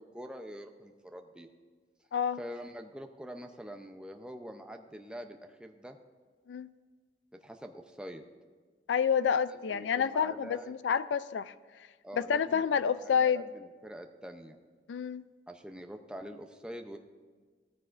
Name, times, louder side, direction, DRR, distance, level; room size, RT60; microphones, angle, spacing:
voice 1, 0.0-1.5 2.4-6.0 7.3-8.2 9.5-10.8 12.0-14.6 15.5-17.0, equal, 5° right, 4 dB, 0.6 m, -45 dB
voice 2, 8.9-11.5 12.2-13.4 14.9-15.3, left 7 dB, 90° left, 16 dB, 0.4 m, -28 dB
16.0 x 14.0 x 2.5 m, 1.5 s
head